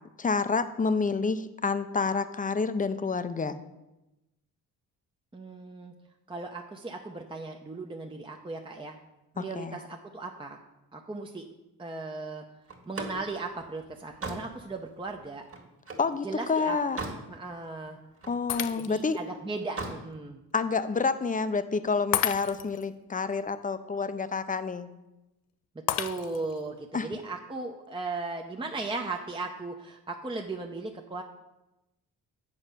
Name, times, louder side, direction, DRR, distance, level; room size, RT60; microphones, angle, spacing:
voice 1, 0.2-3.5 9.4-9.8 16.0-17.0 18.3-19.2 20.5-24.9 26.9-27.1, left 4 dB, 20° left, 12 dB, 0.6 m, -28 dB
voice 2, 5.3-5.9 6.3-9.0 9.3-10.6 10.9-11.5 11.8-12.4 12.9-15.4 16.2-16.8 17.3-18.0 18.8-20.4 26.0-31.2, right 3 dB, 15° right, 2 dB, 0.7 m, -37 dB
Slam, 12.7-16.1 16.6-17.3 17.7-18.8 19.6-20.0, right 2 dB, 35° right, 1.8 m, -39 dB
Shatter, 18.5-19.2 19.8-19.9 22.1-22.9 25.9-26.6, left 12 dB, 85° left, 0.6 m, -31 dB
8.3 x 4.3 x 6.7 m, 0.96 s
cardioid pair, 75°, 38 cm